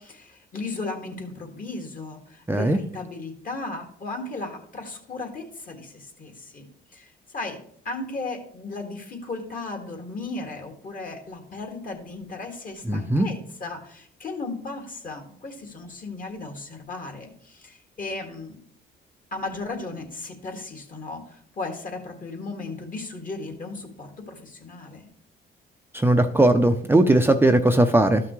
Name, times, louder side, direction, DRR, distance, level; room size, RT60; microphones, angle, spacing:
voice 1, 0.0-6.6 6.9-18.6 19.3-25.1, left 3 dB, 45° left, 4 dB, 2.0 m, -36 dB
voice 2, 2.5-2.8 12.9-13.3 25.9-28.2, right 1 dB, 10° right, 5 dB, 0.6 m, -18 dB
12.5 x 5.8 x 3.2 m, 0.63 s
cardioid pair, 90°, 20 cm